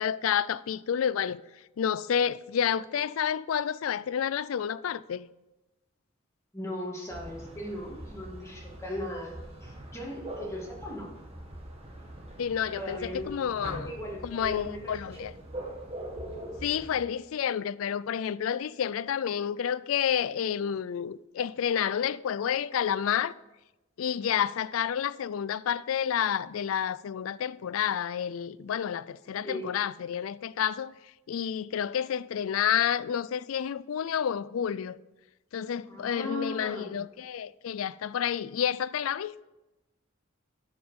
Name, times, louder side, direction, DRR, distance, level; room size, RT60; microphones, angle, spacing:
voice 1, 0.0-1.4 1.8-5.3 12.4-13.9 14.2-15.3 16.6-23.3 24.0-30.9 31.3-35.0 35.5-39.4, left 8 dB, 80° left, 0.4 m, -30 dB
voice 2, 6.5-11.1 12.7-13.5 13.9-15.3 29.4-29.7 35.8-37.0, left 1 dB, 15° left, 2.1 m, -38 dB
sound 1, 7.1-17.0, right 1 dB, 30° right, 1.5 m, -43 dB
9.4 x 5.7 x 7.0 m
head